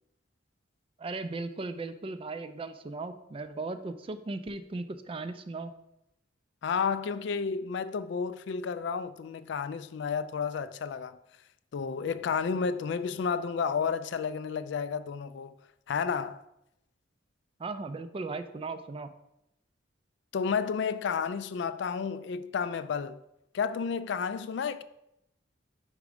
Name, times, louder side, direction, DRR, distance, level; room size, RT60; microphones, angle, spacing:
voice 1, 1.0-5.7 17.6-19.1, right 3 dB, 30° right, 0.3 m, -37 dB
voice 2, 6.6-11.2 11.7-15.5 15.9-16.4 20.3-23.2 23.5-24.8, left 6 dB, 65° left, 0.3 m, -31 dB
5.1 x 4.7 x 4.9 m
head